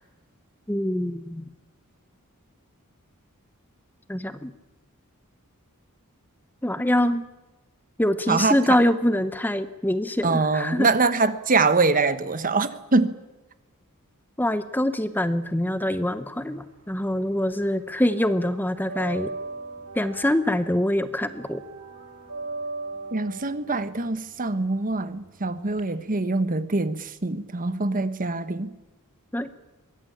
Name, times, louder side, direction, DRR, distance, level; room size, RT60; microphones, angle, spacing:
voice 1, 0.7-1.5 4.1-4.5 6.6-7.2 8.0-10.9 14.4-19.3 19.9-21.6 29.3-29.5, left 1 dB, 10° left, 11 dB, 0.9 m, -24 dB
voice 2, 10.2-13.1 23.1-28.7, right 3 dB, 40° right, 12 dB, 1.2 m, -24 dB
sound 1, 16.5-17.6 17.9-25.8, right 3 dB, 90° right, 4.8 m, -38 dB
23.0 x 17.0 x 8.6 m, 1.1 s
head